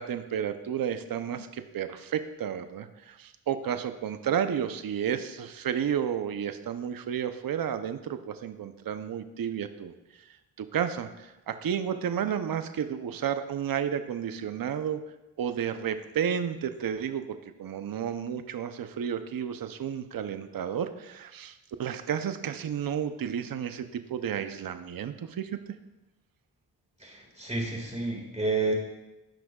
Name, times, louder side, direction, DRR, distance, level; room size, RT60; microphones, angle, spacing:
voice 1, 0.0-9.9 10.6-15.0 15.4-25.6, right 8 dB, 55° right, 9 dB, 0.7 m, -32 dB
voice 2, 27.0-28.7, right 3 dB, 15° right, -1 dB, 2.0 m, -30 dB
15.0 x 6.0 x 2.4 m, 1.0 s
cardioid pair, 50°, 41 cm